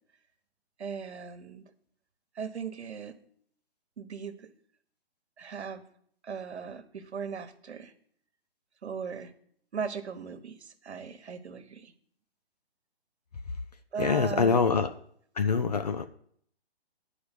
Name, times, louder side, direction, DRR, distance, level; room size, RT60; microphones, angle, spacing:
voice 1, 0.8-1.6 2.3-3.2 4.0-4.5 5.4-5.8 6.2-7.9 8.8-9.3 9.7-11.9 13.9-14.6, right 6 dB, 80° right, 9 dB, 1.3 m, -38 dB
voice 2, 14.0-14.9 15.4-16.1, left 5 dB, 40° left, 8 dB, 0.5 m, -25 dB
10.5 x 4.9 x 8.2 m, 0.63 s
hypercardioid pair, 160°, 33 cm